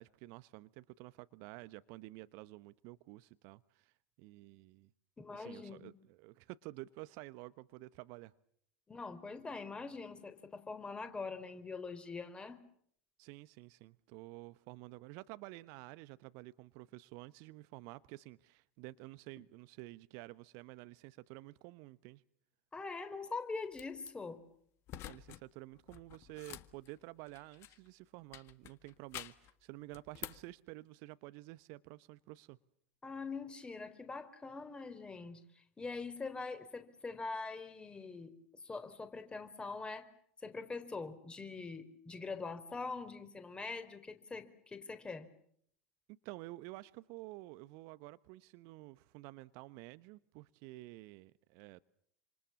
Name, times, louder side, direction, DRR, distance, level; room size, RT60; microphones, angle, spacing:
voice 1, 0.0-4.9 5.3-8.3 13.2-22.2 25.0-32.6 46.1-51.8, right 20 dB, 50° right, 1.0 m, -51 dB
voice 2, 5.2-5.9 8.9-12.6 22.7-24.4 33.0-40.1 40.4-45.3, left 4 dB, 15° left, 4.2 m, -43 dB
sound 1, 23.7-24.1 24.9-25.4 25.7-27.9 28.3-29.5 29.9-30.5, left 14 dB, 45° left, 1.6 m, -49 dB
28.5 x 27.0 x 7.3 m
figure-of-eight pair, 80°, 6 cm